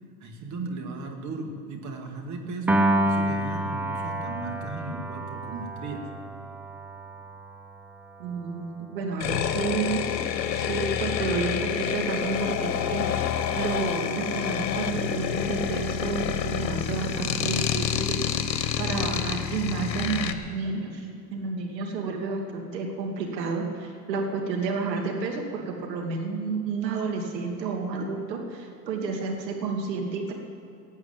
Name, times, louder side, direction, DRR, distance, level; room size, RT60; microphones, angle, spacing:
voice 1, 0.2-6.0, right 3 dB, 35° right, 3 dB, 2.3 m, -36 dB
Piano, 2.7-9.1, right 1 dB, 5° right, 0.3 m, -29 dB
voice 2, 8.2-8.7 8.9-10.0 10.5-18.3 18.8-30.3, right 4 dB, 80° right, 2 dB, 2.6 m, -30 dB
sound 1, 9.2-20.3, left 9 dB, 85° left, 1.2 m, -28 dB
16.0 x 8.2 x 8.7 m, 2.6 s
hypercardioid pair, 105°, 49 cm